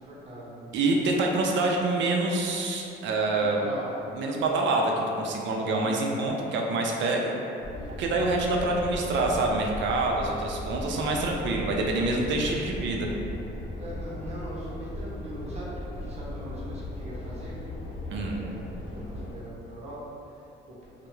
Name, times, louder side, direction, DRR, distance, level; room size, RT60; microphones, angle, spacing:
voice 1, 0.0-0.7 3.3-4.0 5.6-6.2 7.7-8.1 10.7-11.2 12.1-12.8 13.8-17.6 18.2-20.0 20.3-20.8, equal, 35° right, -7 dB, 0.7 m, -41 dB
voice 2, 0.7-3.6 4.1-7.4 8.0-13.1 18.1-18.3, right 2 dB, 70° right, 0 dB, 0.4 m, -26 dB
sound 1, 7.6-19.4, left 1 dB, 70° left, 0.5 m, -37 dB
2.2 x 2.0 x 3.0 m, 2.7 s
cardioid pair, 90°, 20 cm